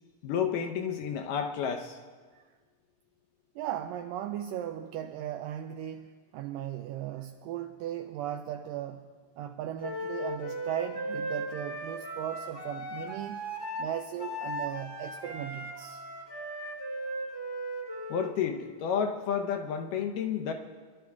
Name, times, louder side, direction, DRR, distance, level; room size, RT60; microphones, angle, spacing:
voice 1, 0.2-2.0 18.1-20.5, left 7 dB, 75° left, 2.1 m, -31 dB
voice 2, 3.6-9.1 9.4-13.5 13.8-16.0, right 11 dB, 85° right, 1.9 m, -37 dB
Wind instrument woodwind instrument, 9.8-18.3, right 1 dB, 15° left, 0.9 m, -37 dB
24.5 x 12.0 x 3.5 m
omnidirectional pair, 4.4 m